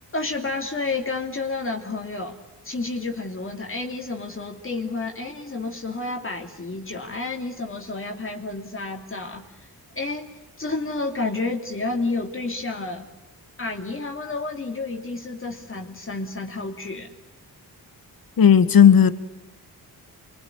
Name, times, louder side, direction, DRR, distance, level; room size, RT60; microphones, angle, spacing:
voice 1, 0.1-2.4 2.6-9.4 9.9-10.3 10.6-13.1 13.6-17.1, left 3 dB, 35° left, 3 dB, 2.8 m, -30 dB
voice 2, 18.4-19.1, left 8 dB, 65° left, 11 dB, 1.7 m, -13 dB
26.0 x 23.5 x 9.8 m, 1.0 s
wide cardioid pair, 100°, 38 cm